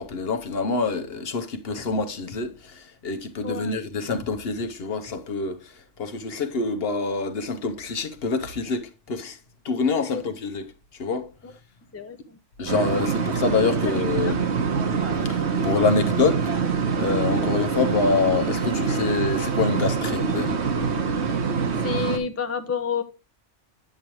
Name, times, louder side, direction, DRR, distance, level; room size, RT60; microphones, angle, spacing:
voice 1, 0.0-5.7 6.0-9.4 9.6-10.7 11.0-11.3 12.6-14.4 15.2-16.5 16.9-20.6, left 4 dB, 55° left, 1.0 m, -26 dB
voice 2, 3.4-3.8 10.1-10.2 11.4-11.5 11.9-12.4 14.2-14.4 17.3-17.5 21.8-23.0, left 6 dB, 20° left, 0.4 m, -29 dB
sound 1, 12.7-22.2, right 5 dB, 65° right, 1.3 m, -25 dB
8.5 x 7.8 x 3.0 m
omnidirectional pair, 1.3 m